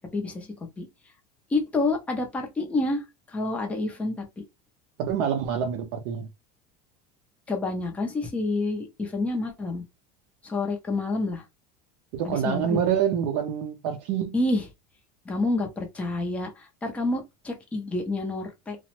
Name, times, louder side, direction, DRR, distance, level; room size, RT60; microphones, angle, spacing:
voice 1, 0.1-0.5 0.8-0.9 1.5-4.4 7.5-9.8 10.4-11.4 12.2-12.8 14.3-14.7 15.3-18.8, left 2 dB, 5° left, 0.4 m, -28 dB
voice 2, 5.0-6.3 12.1-14.4, right 8 dB, 55° right, 0.5 m, -26 dB
2.9 x 2.0 x 2.9 m
cardioid pair, 170°, 20 cm